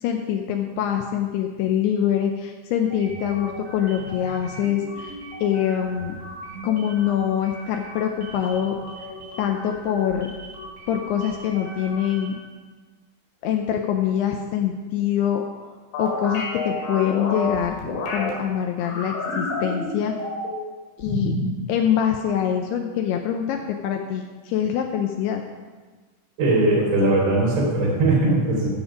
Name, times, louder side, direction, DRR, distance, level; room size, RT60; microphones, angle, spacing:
voice 1, 0.0-6.2 6.6-8.8 9.4-10.3 10.9-12.4 13.4-15.7 16.0-17.8 18.1-20.1 21.0-21.3 21.7-25.4, left 9 dB, 85° left, 3 dB, 2.4 m, -24 dB
sound 1, 2.9-12.5, right 1 dB, 40° right, 3.6 m, -39 dB
sound 2, 15.9-18.3 18.8-20.7 21.0-21.6, left 2 dB, 70° left, 4.0 m, -28 dB
voice 2, 26.4-28.7, right 2 dB, 70° right, -4 dB, 5.9 m, -20 dB
13.5 x 7.1 x 5.1 m, 1.4 s
omnidirectional pair, 5.4 m